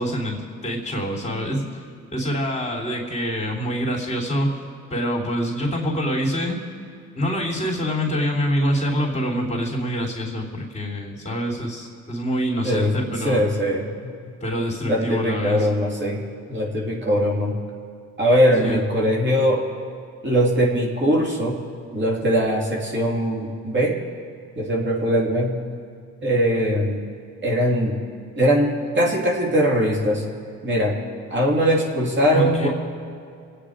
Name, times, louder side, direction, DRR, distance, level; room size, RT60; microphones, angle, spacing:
voice 1, 0.0-1.8 2.1-4.6 4.9-6.6 7.1-13.4 14.4-15.7 18.6-18.9 32.2-32.7, equal, 25° left, -2 dB, 3.2 m, -25 dB
voice 2, 12.6-14.1 14.9-16.2 16.5-17.5 18.2-19.7 20.2-21.6 21.9-24.0 24.6-25.6 26.2-27.1 27.4-28.0 28.4-30.2 30.6-31.0 31.3-32.7, equal, 40° right, -2 dB, 3.0 m, -21 dB
26.0 x 8.9 x 5.0 m, 2.4 s
cardioid pair, 90°, 30 cm